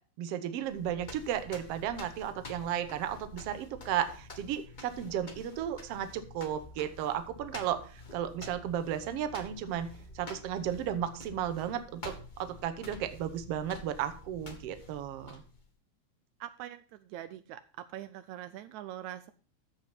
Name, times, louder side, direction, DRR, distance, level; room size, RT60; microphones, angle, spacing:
voice 1, 0.2-15.4, right 10 dB, 65° right, 11 dB, 1.8 m, -34 dB
sound 1, 0.6-15.7, left 2 dB, 35° left, 0.7 m, -49 dB
voice 2, 16.4-19.3, right 12 dB, 80° right, 12 dB, 1.9 m, -43 dB
14.0 x 5.2 x 5.6 m, 0.38 s
omnidirectional pair, 3.3 m